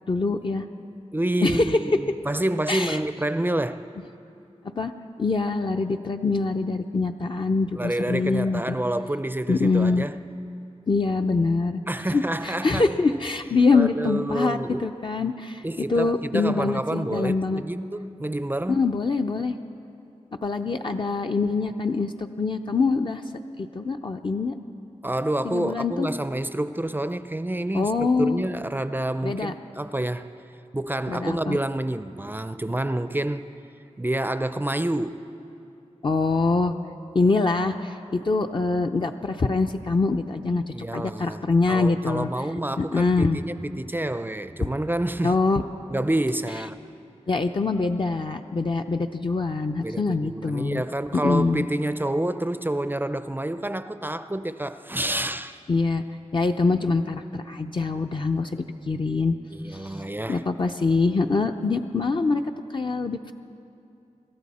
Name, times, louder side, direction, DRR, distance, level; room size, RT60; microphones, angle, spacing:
voice 1, 0.1-0.7 1.4-1.8 2.7-3.0 4.8-4.9 5.2-8.8 9.5-10.1 10.9-11.8 12.1-15.6 15.9-17.6 18.7-19.6 20.4-23.2 23.6-24.5 25.4-26.1 27.7-28.4 29.2-29.5 31.1-31.6 36.0-36.7 37.1-40.6 40.9-42.3 42.8-43.4 45.2-45.6 47.3-50.8 51.2-51.7 55.7-56.0 56.3-59.3 59.7-62.4 62.7-63.3, left 3 dB, 45° left, 0.6 m, -24 dB
voice 2, 1.1-3.8 7.8-10.2 11.9-13.2 13.7-14.9 15.6-18.8 25.0-30.4 30.7-33.5 34.0-35.3 40.7-45.4 45.9-46.8 49.8-55.6 59.5-60.5, right 1 dB, 15° right, 0.5 m, -28 dB
25.5 x 13.5 x 4.2 m
wide cardioid pair, 75°, 12 cm